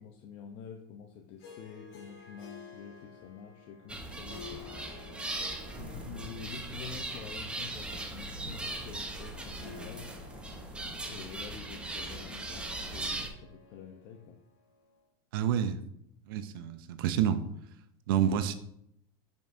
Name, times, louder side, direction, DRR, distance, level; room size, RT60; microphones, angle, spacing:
voice 1, 0.0-4.6 5.8-10.1 11.0-14.4, left 6 dB, 50° left, 2 dB, 0.8 m, -47 dB
Harp, 1.4-15.0, left 6 dB, 70° left, 2.2 m, -53 dB
sound 1, 3.9-13.3, right 2 dB, 10° right, 0.8 m, -39 dB
voice 2, 15.3-15.8 16.3-17.4 18.1-18.5, right 9 dB, 70° right, 11 dB, 0.6 m, -28 dB
7.5 x 5.3 x 2.7 m, 0.73 s
supercardioid pair, 120°, 12 cm